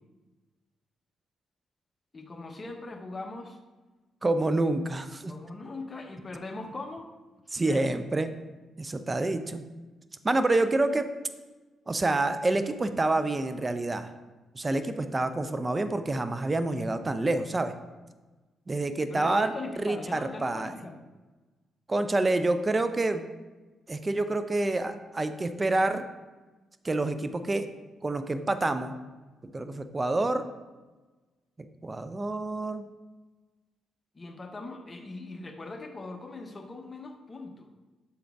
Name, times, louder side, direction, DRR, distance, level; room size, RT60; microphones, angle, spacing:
voice 1, 2.1-3.6 5.3-7.1 7.5-7.9 19.1-21.0 34.1-37.7, left 2 dB, 35° left, 4 dB, 0.9 m, -40 dB
voice 2, 4.2-5.3 7.5-8.3 8.8-9.6 10.2-11.1 11.9-14.1 14.5-17.7 18.7-20.7 21.9-23.2 23.9-26.0 26.8-27.7 28.0-29.0 29.5-30.5 31.6-32.8, right 2 dB, 30° right, 9 dB, 0.5 m, -27 dB
7.1 x 3.8 x 3.4 m, 1.2 s
supercardioid pair, 55°, 0 cm